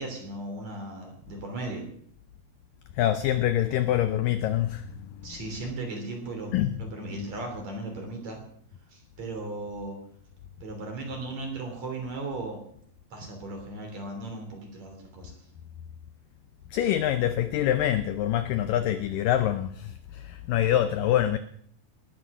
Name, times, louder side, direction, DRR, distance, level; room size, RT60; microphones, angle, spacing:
voice 1, 0.0-1.9 5.2-8.4 8.9-10.0 10.6-12.6 13.1-15.4, right 2 dB, 45° right, 4.1 m, -37 dB
voice 2, 3.0-4.9 5.3-5.7 6.5-6.8 7.2-7.3 16.7-21.4, left 11 dB, 85° left, 1.9 m, -25 dB
19.5 x 9.6 x 6.1 m
omnidirectional pair, 4.8 m